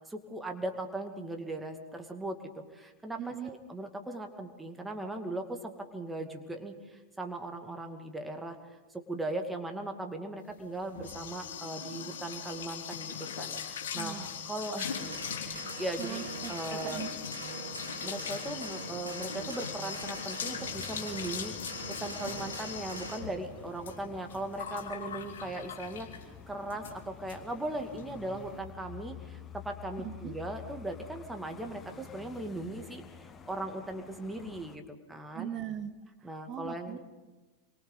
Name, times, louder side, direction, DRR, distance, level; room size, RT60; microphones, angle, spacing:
voice 1, 0.1-2.4 2.7-14.2 14.4-15.0 15.4-17.0 18.0-34.8 35.1-35.5 36.2-37.0, right 2 dB, 10° right, 4 dB, 2.4 m, -39 dB
voice 2, 3.2-3.5 13.9-14.3 16.0-17.1 30.0-30.3 35.3-35.9 36.2-37.0, right 10 dB, 30° right, 10 dB, 1.3 m, -40 dB
sound 1, 10.6-26.3 26.7-27.0 27.3-27.4 27.7-28.0, left 7 dB, 60° left, 2.9 m, -40 dB
sound 2, 14.9-23.2, right 2 dB, 85° right, 3.6 m, -43 dB
sound 3, 20.6-34.8, left 7 dB, 20° left, 1.3 m, -50 dB
28.0 x 23.5 x 4.1 m, 1.2 s
figure-of-eight pair, 90°, 0 cm